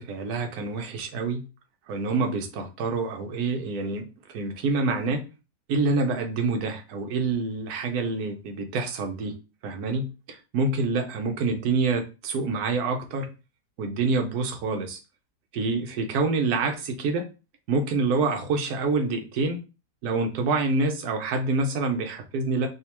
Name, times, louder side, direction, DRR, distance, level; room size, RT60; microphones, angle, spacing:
voice 1, 0.0-1.4 1.9-5.2 5.7-9.4 9.6-13.3 13.8-15.0 15.5-17.3 17.7-19.6 20.0-22.7, right 3 dB, 70° right, 4 dB, 1.1 m, -27 dB
3.5 x 2.8 x 2.9 m, 0.31 s
omnidirectional pair, 1.8 m